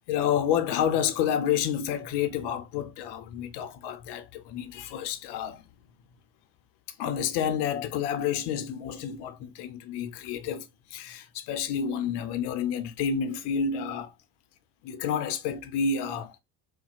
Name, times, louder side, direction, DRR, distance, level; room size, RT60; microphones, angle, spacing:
voice 1, 0.1-5.6 7.0-14.1 14.8-16.3, left 8 dB, 60° left, 0.7 m, -29 dB
4.1 x 2.2 x 2.4 m
hypercardioid pair, 70°, 47 cm